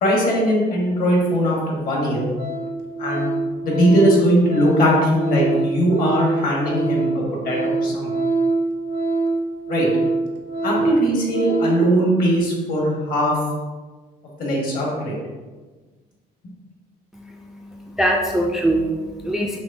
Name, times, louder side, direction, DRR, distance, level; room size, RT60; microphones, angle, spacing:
voice 1, 0.0-2.3 3.0-3.3 3.6-8.1 9.7-9.9 10.6-13.4 14.4-15.2, equal, 55° left, -3 dB, 1.4 m, -20 dB
Organ, 1.3-1.4 1.9-2.1 2.3-11.9 12.2-12.4, right 3 dB, 85° right, 0.6 m, -24 dB
voice 2, 17.1-19.6, right 1 dB, 5° right, 0 dB, 0.3 m, -23 dB
6.0 x 2.1 x 2.6 m, 1.3 s
cardioid pair, 110°, 17 cm